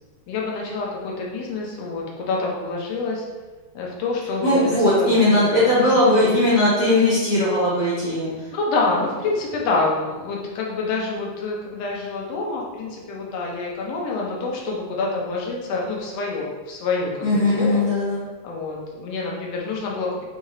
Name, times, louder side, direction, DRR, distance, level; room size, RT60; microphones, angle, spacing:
voice 1, 0.3-3.2 3.7-6.4 8.5-17.8 18.4-20.2, left 3 dB, 70° left, -2 dB, 1.7 m, -27 dB
voice 2, 4.4-8.3 17.2-18.2, left 1 dB, 50° left, -11 dB, 1.8 m, -18 dB
4.8 x 3.4 x 2.7 m, 1.3 s
omnidirectional pair, 3.3 m